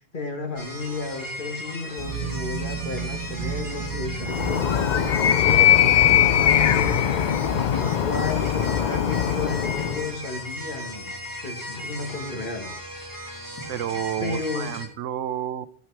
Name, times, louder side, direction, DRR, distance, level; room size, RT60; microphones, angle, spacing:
voice 1, 0.1-12.7 14.2-14.7, left 3 dB, 45° left, 1.7 m, -33 dB
sound 1, 0.6-14.9, equal, 15° left, 2.0 m, -37 dB
sound 2, 2.0-7.6, right 6 dB, 65° right, 1.3 m, -34 dB
Animal, 4.2-10.1, left 10 dB, 65° left, 0.4 m, -21 dB
voice 2, 13.7-15.7, right 11 dB, 90° right, 1.0 m, -30 dB
17.5 x 5.8 x 4.6 m
omnidirectional pair, 1.3 m